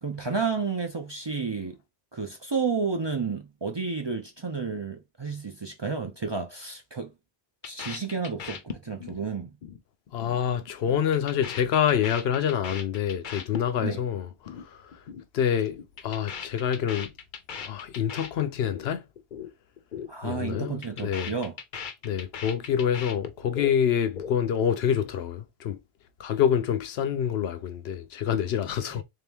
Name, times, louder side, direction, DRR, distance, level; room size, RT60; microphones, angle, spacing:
voice 1, 0.0-1.8 2.1-7.1 7.6-9.5 13.8-14.0 20.1-21.5, right 5 dB, 35° right, 0.4 m, -31 dB
sound 1, 7.6-9.2 9.5-9.8 10.1-10.4 10.7-14.0 14.3-14.6 14.9-15.2 15.5-18.9 19.2-19.5 19.8-20.1 20.4-23.7 24.0-24.6, left 7 dB, 55° left, 0.7 m, -39 dB
voice 2, 10.1-14.3 14.6-15.0 15.3-15.8 16.0-17.1 17.6-19.0 20.2-21.3 22.0-25.8 26.2-29.0, left 8 dB, 85° left, 0.9 m, -26 dB
3.5 x 2.8 x 3.4 m
omnidirectional pair, 1.0 m